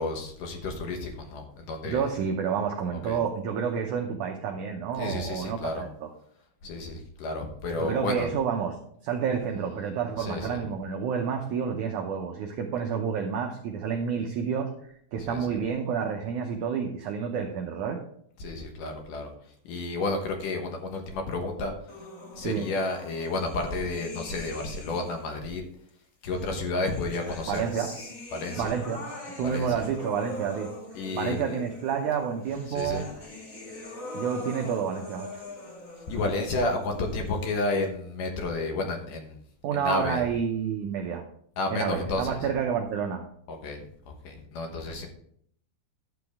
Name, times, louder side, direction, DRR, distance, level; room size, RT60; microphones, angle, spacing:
voice 1, 0.0-2.2 2.9-3.2 5.0-5.9 6.6-8.3 10.2-10.7 15.2-15.6 18.4-21.9 22.4-25.6 26.2-27.6 28.3-28.8 29.4-29.8 30.9-31.6 32.7-33.1 36.0-39.4 39.7-40.3 41.6-42.5 43.5-45.1, left 2 dB, 65° left, 3 dB, 2.5 m, -32 dB
voice 2, 1.8-5.9 7.8-8.7 9.0-18.0 22.4-22.7 27.5-27.9 28.6-29.0 29.4-30.7 31.1-33.0 34.1-35.4 39.6-41.2 41.7-43.2, right 7 dB, 85° right, 3 dB, 1.7 m, -29 dB
sound 1, 21.9-25.3 26.3-37.9, left 2 dB, 35° left, 1.3 m, -43 dB
11.5 x 7.9 x 3.5 m, 0.65 s
omnidirectional pair, 4.5 m